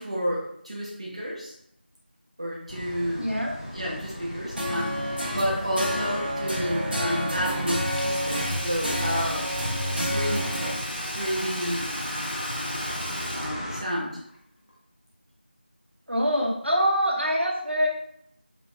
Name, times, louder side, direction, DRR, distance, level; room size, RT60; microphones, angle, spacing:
voice 1, 0.0-1.5 2.4-3.3 3.7-9.5 10.0-10.5 11.1-12.0 13.3-14.2, equal, 35° right, -5 dB, 1.0 m, -30 dB
sound 1, 2.7-13.8, equal, 25° left, 0.7 m, -36 dB
voice 2, 3.2-3.5 16.1-17.9, equal, 85° right, -1 dB, 1.3 m, -24 dB
sound 2, 4.6-10.7, equal, 60° right, 1.6 m, -29 dB
Sink (filling or washing), 7.8-14.4 14.7-14.8, equal, 55° left, 1.1 m, -37 dB
5.9 x 3.5 x 2.4 m, 0.69 s
figure-of-eight pair, 175°, 6 cm